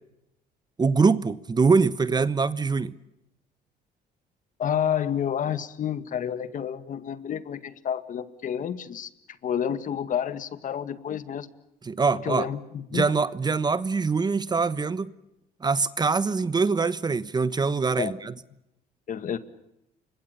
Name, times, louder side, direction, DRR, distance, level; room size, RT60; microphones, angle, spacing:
voice 1, 0.8-3.0 11.8-12.5 12.9-15.1 15.6-18.3, right 4 dB, 25° right, 1.1 m, -23 dB
voice 2, 4.6-9.1 9.4-11.5 12.2-13.1 18.0-18.1 19.1-19.4, left 9 dB, 50° left, 2.1 m, -29 dB
29.5 x 25.0 x 6.8 m
cardioid pair, 110°, 17 cm